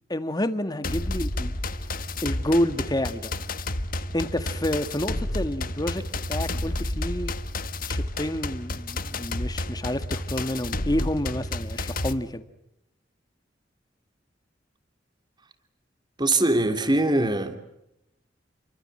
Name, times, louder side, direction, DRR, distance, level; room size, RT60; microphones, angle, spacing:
voice 1, 0.1-1.5 2.2-3.3 4.1-6.0 6.3-7.3 7.9-12.4, left 1 dB, 20° left, 10 dB, 1.9 m, -29 dB
sound 1, 0.8-12.1, left 2 dB, 50° left, 1.6 m, -31 dB
voice 2, 16.2-17.6, right 2 dB, 25° right, 8 dB, 2.9 m, -22 dB
30.0 x 24.0 x 7.9 m, 0.84 s
head